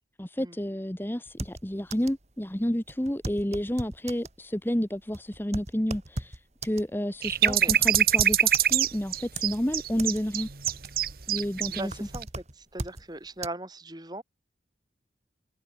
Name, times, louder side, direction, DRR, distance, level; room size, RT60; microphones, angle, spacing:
voice 1, 0.2-10.5 11.3-12.1, equal, 10° left, 1.0 m, -30 dB
sound 1, 1.3-2.3 2.5-2.6 2.9-4.4 4.9-9.0 9.4-10.2 10.5-11.1 11.4-13.1 13.4-13.5, right 2 dB, 40° right, 3.3 m, -38 dB
sound 2, 7.2-11.8 12.1-12.2, right 10 dB, 55° right, 1.7 m, -24 dB
voice 2, 7.4-7.7 11.7-12.3 12.6-14.2, right 1 dB, 25° right, 3.5 m, -38 dB
head